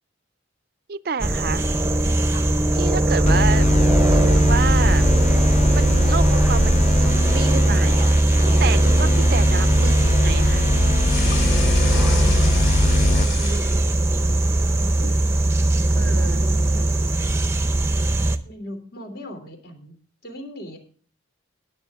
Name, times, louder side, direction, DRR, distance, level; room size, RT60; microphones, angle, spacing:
voice 1, 0.9-1.7 2.2-2.3 2.7-3.7 4.1-5.2 5.7-8.1 8.4-10.7 16.0-16.4, right 5 dB, 50° right, 17 dB, 0.4 m, -29 dB
sound 1, 1.2-18.4, right 1 dB, 15° right, 0.7 m, -19 dB
voice 2, 2.3-2.7 8.8-9.1 11.9-12.7 13.0-14.4 14.8-14.9 15.9-17.4 18.4-20.0 20.2-20.8, equal, 50° left, 5 dB, 3.1 m, -38 dB
sound 2, 3.3-13.3, left 2 dB, 35° left, 0.4 m, -23 dB
sound 3, 10.9-14.1 14.5-15.2, left 5 dB, 70° left, 3.2 m, -33 dB
19.0 x 7.3 x 3.6 m, 0.44 s
head